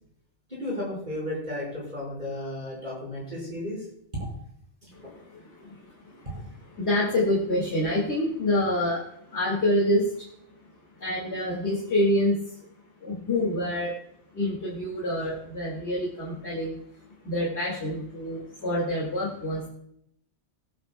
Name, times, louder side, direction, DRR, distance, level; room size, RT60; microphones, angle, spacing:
voice 1, 0.5-3.8 4.8-5.1, left 1 dB, 40° right, -5 dB, 5.4 m, -34 dB
voice 2, 4.9-6.3 6.8-10.7 11.0-12.6 13.0-13.9 14.3-16.8 17.2-19.7, left 1 dB, 65° left, -4 dB, 2.6 m, -27 dB
18.5 x 9.7 x 2.3 m, 0.74 s
omnidirectional pair, 1.2 m